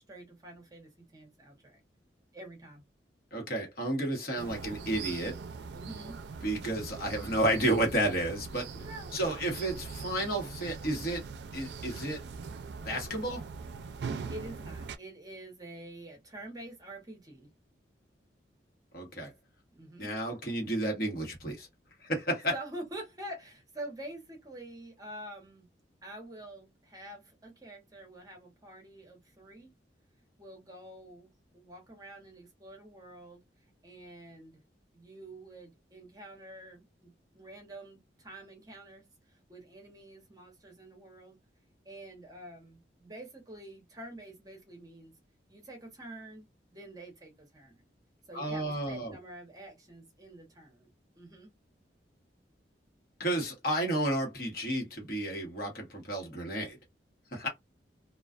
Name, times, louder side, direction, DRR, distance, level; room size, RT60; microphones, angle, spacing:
voice 1, 0.0-1.8 2.3-2.8 5.7-6.2 8.7-9.5 14.0-17.5 19.7-20.1 22.5-25.7 26.0-29.7 30.4-33.4 33.8-34.6 34.9-41.4 41.8-45.1 45.5-46.5 46.7-47.8 48.3-51.5, right 1 dB, 20° right, 0.8 m, -47 dB
voice 2, 3.3-5.4 6.4-8.7 9.1-11.3 11.5-12.2 12.8-13.5 18.9-19.3 20.0-21.7 22.0-22.5 48.3-49.1 53.2-56.8 57.3-57.5, right 1 dB, 55° left, 1.2 m, -31 dB
sound 1, 4.4-15.0, right 5 dB, 70° right, 0.4 m, -42 dB
2.3 x 2.3 x 2.4 m
head